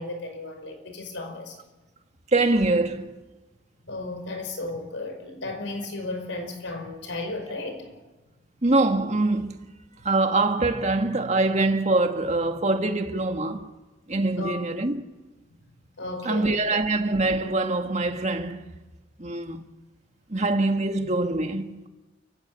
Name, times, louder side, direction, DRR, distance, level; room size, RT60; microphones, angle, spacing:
voice 1, 0.0-1.6 3.8-7.9 14.4-14.6 16.0-16.5, left 2 dB, 90° left, 5.4 m, -34 dB
voice 2, 2.3-3.1 8.6-9.7 10.0-13.7 14.1-15.1 16.2-18.7 19.2-19.6 20.3-21.9, right 2 dB, 40° right, 1.7 m, -24 dB
29.5 x 16.0 x 8.7 m
head